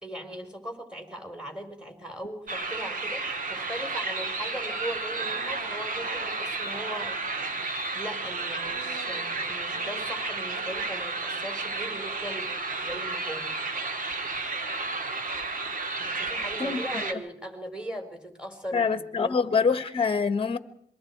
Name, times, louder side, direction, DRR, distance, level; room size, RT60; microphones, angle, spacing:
voice 1, 0.0-7.6 7.9-12.5 12.8-13.6 16.0-19.7, equal, 5° right, 4.6 m, -39 dB
sound 1, 2.5-17.1, right 3 dB, 45° right, 2.3 m, -32 dB
voice 2, 18.7-20.6, left 5 dB, 30° left, 1.4 m, -25 dB
26.5 x 22.5 x 4.8 m
cardioid pair, 90°, 20 cm